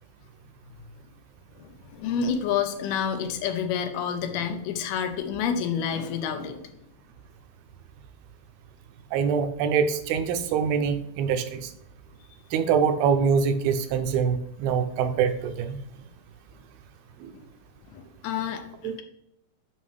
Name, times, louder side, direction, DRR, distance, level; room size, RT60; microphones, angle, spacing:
voice 1, 1.6-6.6 17.3-17.4 17.9-18.6, left 7 dB, 85° left, 7 dB, 2.6 m, -29 dB
voice 2, 9.1-11.7 12.5-15.8 17.2-17.3 18.8-19.0, right 6 dB, 80° right, 8 dB, 2.3 m, -24 dB
7.4 x 5.5 x 3.2 m, 0.77 s
omnidirectional pair, 4.5 m